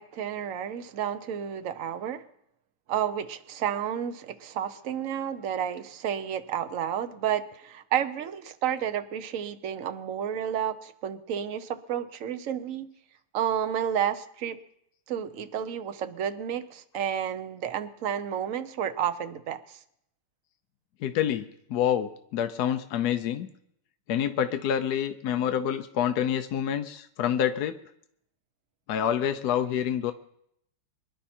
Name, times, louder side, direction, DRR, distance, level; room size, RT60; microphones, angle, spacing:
voice 1, 0.0-2.2 2.9-12.9 13.3-14.6 15.1-19.8, right 9 dB, 70° right, 9 dB, 0.7 m, -31 dB
voice 2, 21.0-23.5 24.1-27.8 28.9-30.1, left 9 dB, 70° left, 9 dB, 0.9 m, -27 dB
25.0 x 11.0 x 4.4 m, 0.74 s
omnidirectional pair, 2.4 m